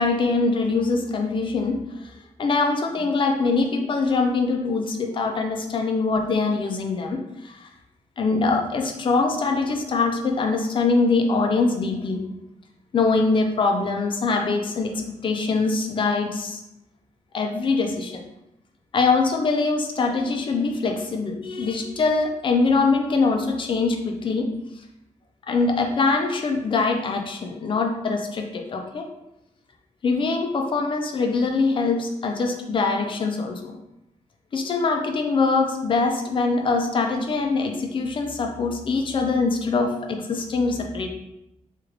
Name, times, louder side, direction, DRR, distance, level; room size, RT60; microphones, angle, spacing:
voice 1, 0.0-1.8 2.4-7.2 7.4-7.7 8.2-12.2 12.9-14.9 15.2-16.6 17.3-18.3 18.9-24.5 25.5-29.0 30.0-33.7 34.5-41.1, left 3 dB, 40° left, 3 dB, 0.4 m, -23 dB
3.3 x 2.4 x 3.1 m, 0.86 s
wide cardioid pair, 150°, 13 cm